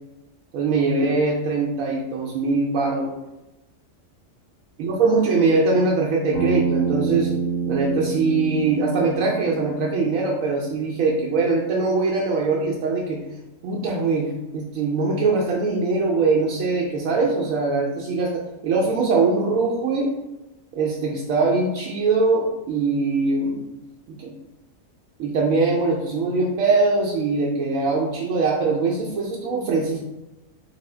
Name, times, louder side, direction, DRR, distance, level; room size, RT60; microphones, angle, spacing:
voice 1, 0.5-3.1 4.8-7.3 7.7-13.2 13.6-20.1 20.7-23.6 24.1-24.3 25.2-30.0, right 3 dB, 80° right, -2 dB, 1.0 m, -22 dB
Bass guitar, 6.3-10.6, right 5 dB, 85° left, 1.4 m, -27 dB
2.7 x 2.7 x 4.2 m, 0.98 s
omnidirectional pair, 1.4 m